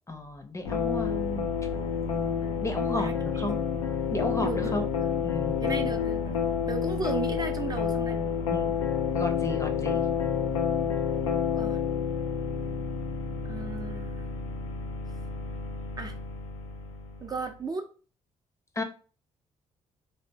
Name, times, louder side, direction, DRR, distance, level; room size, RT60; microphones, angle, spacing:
voice 1, 0.1-1.5 2.6-3.6 4.1-4.8 5.2-5.8 8.5-8.7 9.1-10.1 18.8-18.9, left 2 dB, 20° left, 6 dB, 0.6 m, -33 dB
sound 1, 0.7-17.4, left 6 dB, 90° left, 0.4 m, -29 dB
voice 2, 3.0-3.5 4.4-5.1 5.6-6.4 6.7-8.2 11.2-11.8 13.4-14.3 16.0-16.2 17.2-17.9, right 4 dB, 25° right, 4 dB, 0.4 m, -36 dB
3.1 x 2.0 x 2.7 m, 0.37 s
hypercardioid pair, 45°, 16 cm